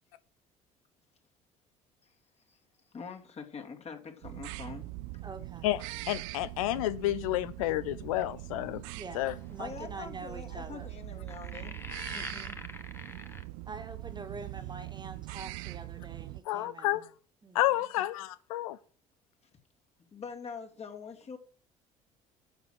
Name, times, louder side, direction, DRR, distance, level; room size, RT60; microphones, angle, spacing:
voice 1, 2.9-4.8 9.6-11.8 20.1-21.4, left 5 dB, 35° left, 2.8 m, -44 dB
sound 1, 4.2-16.4, right 20 dB, 60° right, 0.5 m, -42 dB
voice 2, 5.2-5.7 9.0-10.9 12.1-12.6 13.7-17.0 17.4-17.9, right 3 dB, 25° right, 2.1 m, -45 dB
voice 3, 6.1-8.8 9.1-9.3 16.5-17.0 17.5-18.8, left 15 dB, 70° left, 0.5 m, -30 dB
sound 2, 8.2-8.4 9.4-9.6 11.3-13.4, left 2 dB, 10° left, 1.5 m, -43 dB
12.0 x 7.3 x 6.5 m
figure-of-eight pair, 55°, 19 cm